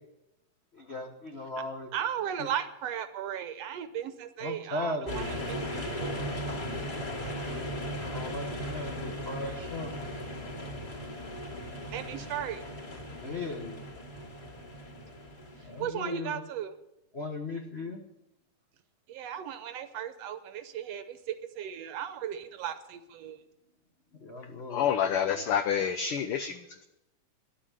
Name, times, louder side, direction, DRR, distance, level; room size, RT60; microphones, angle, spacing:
voice 1, 0.7-1.9 2.4-2.5 4.4-5.3 8.0-9.9 13.2-13.8 15.6-16.4 17.1-18.0 24.1-25.5, left 2 dB, 60° left, 2 dB, 0.6 m, -38 dB
voice 2, 1.9-6.2 11.9-12.6 15.8-16.7 19.1-23.4, right 9 dB, 70° right, 11 dB, 1.7 m, -36 dB
sound 1, 5.1-15.9, equal, 10° left, 2.5 m, -37 dB
voice 3, 24.7-26.6, left 8 dB, 90° left, 10 dB, 1.2 m, -28 dB
11.0 x 8.4 x 9.8 m, 0.88 s
omnidirectional pair, 3.3 m